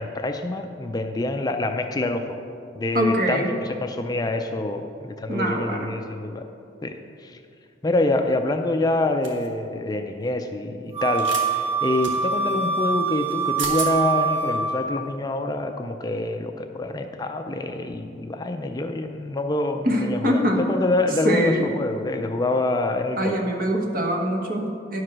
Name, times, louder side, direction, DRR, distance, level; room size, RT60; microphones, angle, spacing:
voice 1, 0.0-2.2 2.8-3.4 3.8-6.5 6.8-7.4 7.8-20.4 20.7-23.4, left 2 dB, 20° left, 6 dB, 0.4 m, -26 dB
voice 2, 2.9-3.5 5.3-6.0 19.8-20.7 21.2-21.7 23.2-25.0, equal, 50° right, 2 dB, 1.1 m, -23 dB
sound 1, 9.2-9.5 11.1-11.4 12.0-12.1 13.3-13.4 13.6-13.9, right 3 dB, 85° right, 1.4 m, -31 dB
Wind instrument woodwind instrument, 10.9-15.0, right 5 dB, 35° right, 0.8 m, -25 dB
11.0 x 4.8 x 6.0 m, 2.5 s
head